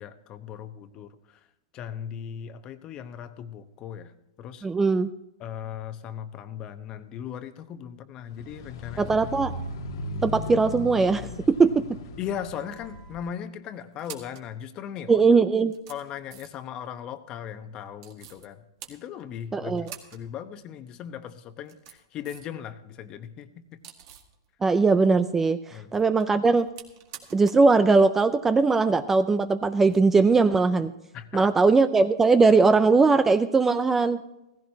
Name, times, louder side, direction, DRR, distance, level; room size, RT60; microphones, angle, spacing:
voice 1, 0.0-1.5 1.7-4.1 4.4-4.7 5.4-9.3 12.2-15.2 15.9-23.8 25.7-25.9 31.1-31.5, left 9 dB, 30° left, 10 dB, 1.0 m, -38 dB
voice 2, 4.6-5.1 9.0-9.5 10.2-11.8 15.1-15.7 19.5-19.9 24.6-26.7 27.3-30.9 31.3-34.2, right 4 dB, 10° right, 12 dB, 0.4 m, -20 dB
sound 1, 8.3-13.2, left 2 dB, 70° left, 1.5 m, -37 dB
sound 2, 12.5-13.1 13.8-14.5 15.2-15.3 15.7-16.7 18.0-18.5 18.8-19.4 19.8-20.3 20.5-20.6 21.5-22.6 22.9-24.4 25.8-27.7 28.0-28.1 29.8-30.0, right 9 dB, 50° right, 2.0 m, -47 dB
16.5 x 15.5 x 2.9 m, 0.91 s
hypercardioid pair, 130°, 2 cm